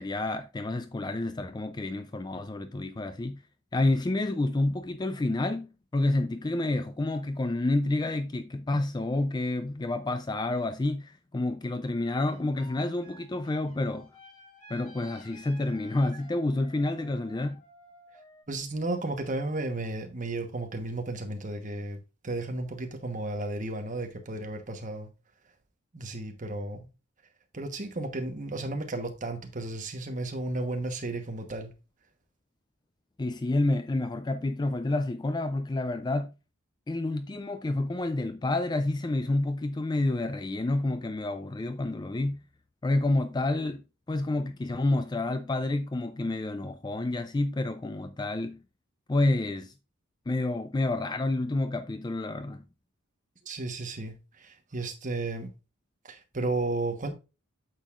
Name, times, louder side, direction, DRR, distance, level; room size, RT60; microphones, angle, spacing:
voice 1, 0.0-3.4 3.7-5.7 5.9-14.1 14.7-17.6 33.2-36.3 36.9-42.4 42.8-43.8 44.1-48.6 49.1-49.7 50.3-52.6, left 2 dB, 20° left, 0.3 m, -29 dB
sound 1, 12.3-18.4, equal, 35° left, 2.9 m, -53 dB
voice 2, 18.5-25.1 25.9-26.9 27.5-31.7 53.4-55.5 56.0-57.1, right 2 dB, 35° right, 1.1 m, -33 dB
8.9 x 6.5 x 2.4 m
head